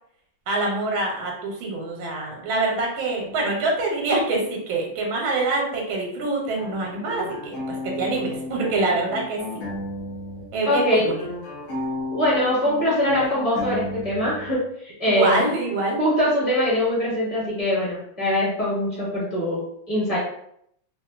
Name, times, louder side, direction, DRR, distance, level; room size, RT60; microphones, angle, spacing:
voice 1, 0.5-7.5 8.0-9.4 10.5-11.2 15.1-16.0, right 2 dB, 80° right, 0 dB, 1.4 m, -25 dB
sound 1, 6.6-10.5 10.7-14.5, left 2 dB, 65° left, 0.7 m, -33 dB
voice 2, 10.7-11.1 12.1-15.5 16.0-20.2, left 1 dB, 20° left, -8 dB, 1.1 m, -23 dB
3.1 x 2.4 x 2.3 m, 0.71 s
omnidirectional pair, 2.3 m